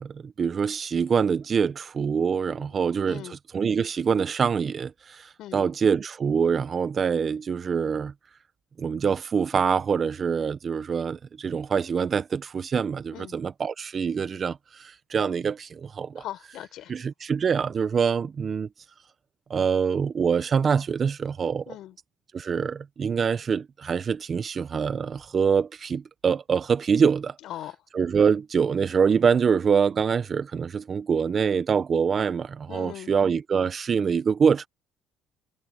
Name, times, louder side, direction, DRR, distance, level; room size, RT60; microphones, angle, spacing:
voice 1, 0.0-5.2 5.5-8.1 8.8-16.2 16.9-18.7 19.5-21.7 22.3-27.3 27.9-34.7, right 6 dB, 40° right, 1.3 m, -25 dB
voice 2, 5.4-5.7 13.1-13.4 16.2-16.9 21.7-21.9 27.4-27.8 32.7-33.1, left 13 dB, 70° left, 5.6 m, -39 dB
supercardioid pair, 80°, 0 cm